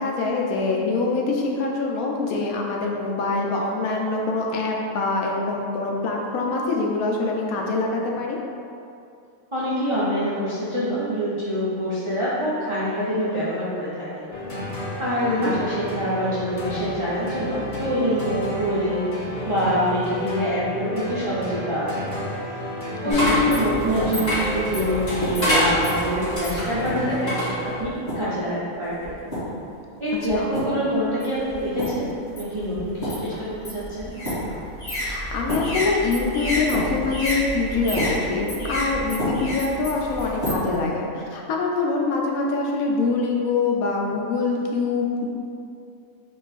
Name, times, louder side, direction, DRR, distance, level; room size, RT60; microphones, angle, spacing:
voice 1, 0.0-8.4 15.3-15.5 23.0-23.3 30.3-30.5 35.0-45.3, left 3 dB, 70° left, 0 dB, 1.0 m, -24 dB
voice 2, 9.5-14.2 15.0-19.2 19.4-22.1 23.0-27.4 27.6-29.1 30.0-34.1, equal, 55° right, -10 dB, 0.3 m, -25 dB
sound 1, 14.3-28.1, equal, 50° left, 0.6 m, -32 dB
sound 2, 23.1-28.4 29.0-29.6 30.3-30.8 31.2-40.9, equal, 30° left, 1.7 m, -27 dB
3.7 x 2.4 x 4.0 m, 2.5 s
omnidirectional pair, 1.6 m